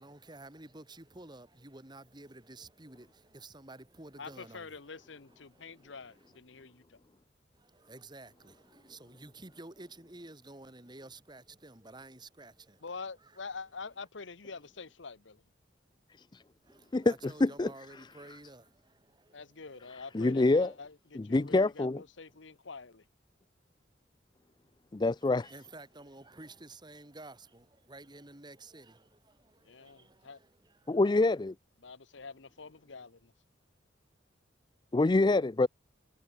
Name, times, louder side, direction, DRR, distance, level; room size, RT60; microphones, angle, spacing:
voice 1, 0.0-6.4 7.5-12.9 13.2-13.4 16.6-20.4 25.2-31.0, right 2 dB, 25° right, 2.1 m, -52 dB
voice 2, 4.2-7.0 12.8-15.4 19.3-23.0 29.6-30.4 31.8-33.3, left 4 dB, 80° left, 1.1 m, -46 dB
voice 3, 16.9-17.7 20.1-20.7 21.2-22.0 24.9-25.5 30.9-31.5 34.9-35.7, left 2 dB, 25° left, 0.4 m, -26 dB
head